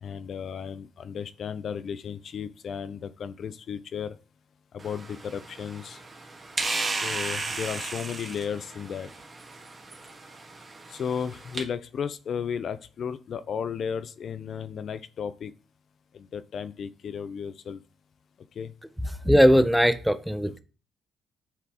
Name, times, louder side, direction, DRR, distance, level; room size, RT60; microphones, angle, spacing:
voice 1, 0.0-4.2 4.7-6.0 7.0-9.1 10.9-15.5 16.1-17.8 18.6-18.7 20.4-20.6, left 7 dB, 60° left, 14 dB, 0.5 m, -34 dB
sound 1, 4.8-11.6, right 3 dB, 35° right, 1.5 m, -35 dB
voice 2, 19.2-20.6, equal, ahead, 11 dB, 0.6 m, -19 dB
8.0 x 4.1 x 2.9 m, 0.36 s
cardioid pair, 90°, 0 cm